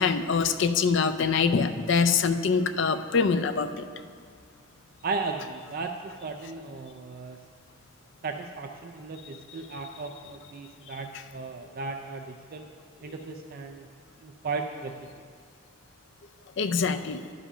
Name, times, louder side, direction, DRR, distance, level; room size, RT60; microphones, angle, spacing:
voice 1, 0.0-3.8 16.6-17.2, left 5 dB, 60° left, 9 dB, 0.4 m, -24 dB
voice 2, 5.0-7.4 8.2-12.6 13.0-13.9 14.2-15.1, right 4 dB, 45° right, 4 dB, 0.4 m, -36 dB
11.0 x 5.0 x 5.5 m, 2.2 s
head